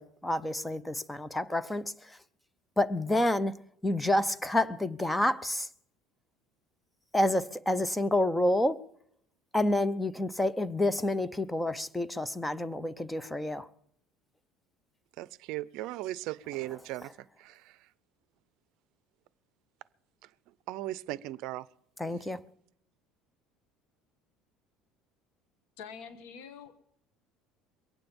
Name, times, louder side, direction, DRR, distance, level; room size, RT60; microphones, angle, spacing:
voice 1, 0.0-2.2 2.8-5.7 7.1-8.8 9.5-13.7 22.0-22.4, left 1 dB, 5° left, 0.6 m, -29 dB
voice 2, 15.2-17.1 17.4-17.9 20.2-20.3 20.7-21.7, right 16 dB, 65° right, 0.5 m, -38 dB
voice 3, 25.8-26.7, left 6 dB, 80° left, 1.3 m, -45 dB
22.5 x 9.1 x 5.3 m
cardioid pair, 130°, 0 cm